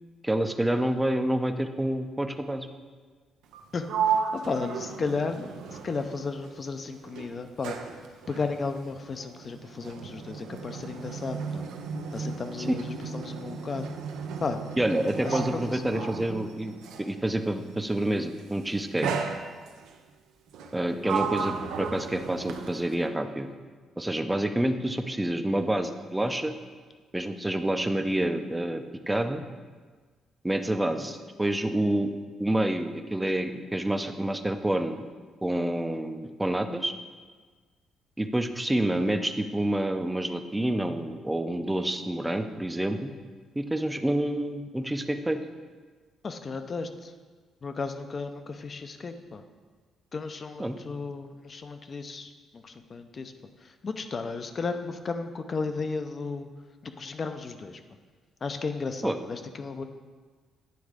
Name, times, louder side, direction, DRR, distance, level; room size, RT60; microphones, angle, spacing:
voice 1, 0.2-2.7 12.7-12.8 14.8-19.1 20.7-23.5 24.0-26.5 27.1-29.4 30.4-32.1 32.4-35.0 35.4-36.9 38.2-43.1 43.6-45.4 50.6-50.8 59.0-59.2, right 1 dB, 10° right, 7 dB, 0.5 m, -28 dB
Sliding door, 3.4-6.7 7.0-17.2 18.1-18.4 19.0-19.9 20.5-23.1, right 6 dB, 90° right, 0.5 m, -34 dB
voice 2, 3.7-5.5 5.8-7.8 8.3-11.6 12.1-13.9 14.4-14.6 15.2-16.1 20.9-21.1 46.2-47.1 47.6-49.4 50.1-53.3 53.6-56.5 56.8-57.8 58.4-59.8, left 4 dB, 40° left, 8 dB, 0.5 m, -34 dB
9.3 x 3.5 x 4.9 m, 1.5 s
cardioid pair, 90°, 0 cm